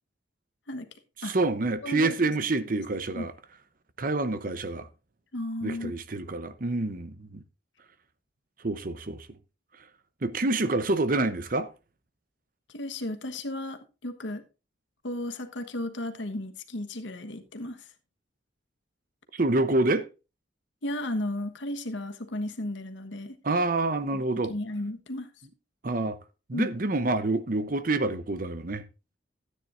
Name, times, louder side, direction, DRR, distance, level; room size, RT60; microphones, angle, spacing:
voice 1, 1.2-3.3 4.0-4.9 5.6-7.4 8.6-9.3 10.2-11.7 19.3-20.1 23.4-24.5 25.8-26.2 26.5-28.8, right 2 dB, 45° right, 0.8 m, -27 dB
voice 2, 1.8-2.3 3.1-3.3 5.3-5.9 12.7-14.4 15.0-17.8 20.8-23.4 24.1-25.3 26.5-26.7, left 1 dB, 70° left, 1.3 m, -34 dB
13.5 x 9.4 x 2.5 m
head